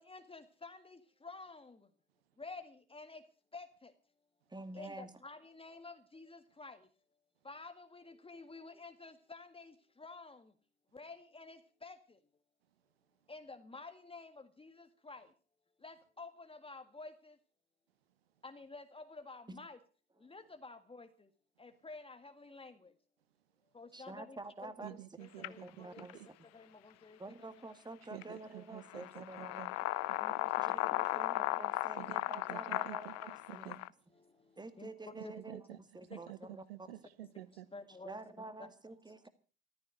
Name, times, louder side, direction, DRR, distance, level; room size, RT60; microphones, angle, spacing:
voice 1, 0.0-1.9 2.4-3.2 3.5-3.9 4.7-6.9 7.4-10.5 10.9-12.2 13.3-15.3 15.8-17.4 18.4-19.8 20.2-21.3 21.6-22.9 23.7-26.2 26.5-27.5 30.1-31.5 32.0-32.1 32.5-32.6 34.2-35.1 36.1-36.2 37.7-38.7, left 3 dB, 20° left, 1.8 m, -51 dB
voice 2, 4.5-5.1 19.5-19.6 23.9-25.0 25.4-26.2 27.2-29.8 30.6-33.8 34.6-35.6 35.9-36.9 38.0-39.3, right 2 dB, 15° right, 2.2 m, -48 dB
voice 3, 24.8-26.3 28.1-29.7 32.0-33.2 33.5-33.8 35.2-35.8 36.1-37.7, right 15 dB, 80° right, 1.1 m, -50 dB
sound 1, 25.4-25.5 26.0-26.1 28.2-28.3 28.9-33.9, left 19 dB, 60° left, 0.8 m, -36 dB
15.0 x 13.5 x 6.4 m
hypercardioid pair, 65°, 30 cm